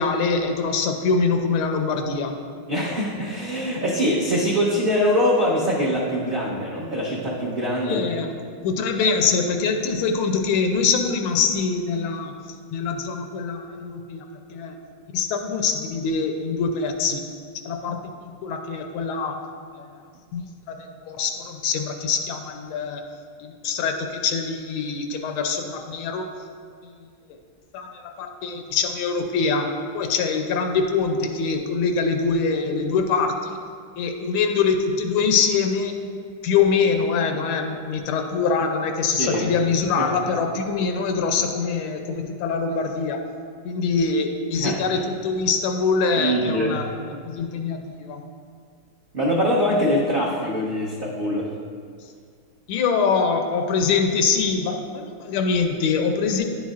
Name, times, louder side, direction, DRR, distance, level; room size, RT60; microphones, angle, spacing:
voice 1, 0.0-2.4 7.8-12.3 12.7-14.2 14.5-14.7 15.1-17.2 17.6-19.4 19.7-19.8 20.3-20.4 20.7-23.0 23.4-26.3 26.8-27.1 27.7-33.6 34.0-35.9 36.4-43.2 43.6-46.9 47.2-48.2 52.7-56.4, left 5 dB, 85° left, 5 dB, 1.5 m, -24 dB
voice 2, 2.7-8.1 39.2-39.5 40.0-40.1 44.5-45.0 46.2-46.9 47.1-47.2 49.1-51.5, equal, 50° right, -7 dB, 0.6 m, -23 dB
10.0 x 7.2 x 2.4 m, 2.1 s
omnidirectional pair, 2.3 m